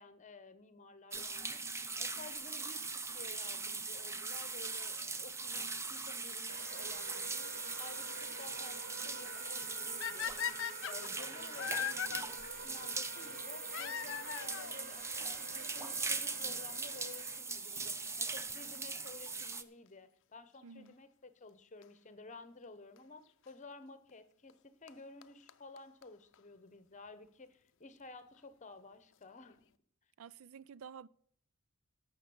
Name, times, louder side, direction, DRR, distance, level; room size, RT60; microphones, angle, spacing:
voice 1, 0.0-1.6 2.0-7.5 7.8-10.5 10.8-29.6, left 3 dB, 35° left, 0.9 m, -53 dB
sound 1, 1.1-19.6, right 4 dB, 10° right, 0.5 m, -40 dB
sound 2, 6.5-17.4, right 2 dB, 40° right, 1.2 m, -50 dB
sound 3, 10.0-12.2 13.7-14.7 15.7-15.8 16.5-16.6 16.8-16.9 18.7-19.0 21.8-21.9 23.0-23.1 24.5-24.6 24.9-25.0 25.2-25.3 25.5-25.6 25.8-25.9 26.0-26.1 26.3-26.4, left 10 dB, 55° left, 0.5 m, -39 dB
voice 2, 20.6-20.9 30.2-31.1, right 6 dB, 70° right, 0.4 m, -51 dB
11.5 x 7.3 x 7.0 m
head